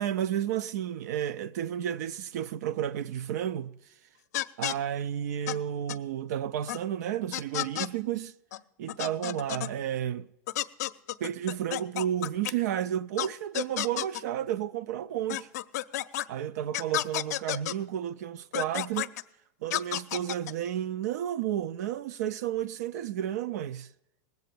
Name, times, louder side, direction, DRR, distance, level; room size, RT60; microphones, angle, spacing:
voice 1, 0.0-3.9 4.6-8.3 8.8-10.3 11.2-15.5 16.3-19.2 19.6-23.9, right 10 dB, 80° right, 0.4 m, -32 dB
sound 1, 4.3-4.8 5.5-5.6 5.9-6.0 6.7-6.8 7.3-7.9 8.5-8.6 8.9-9.7 10.5-12.5 13.2-13.3 13.5-14.2 15.3-16.3 16.7-17.7 18.5-19.2 19.7-20.5, left 15 dB, 75° left, 0.5 m, -31 dB
19.5 x 8.0 x 6.8 m
supercardioid pair, 165°, 9 cm